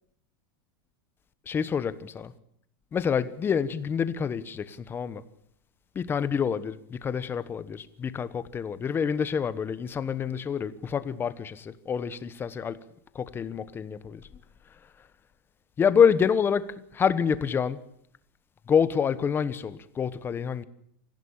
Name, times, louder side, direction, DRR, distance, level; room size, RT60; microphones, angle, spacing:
voice 1, 1.5-2.3 2.9-5.2 5.9-12.8 13.1-14.2 15.8-16.6 16.9-17.8 18.7-20.6, left 7 dB, 20° left, 1.2 m, -27 dB
25.5 x 16.0 x 8.8 m
supercardioid pair, 150°, 11 cm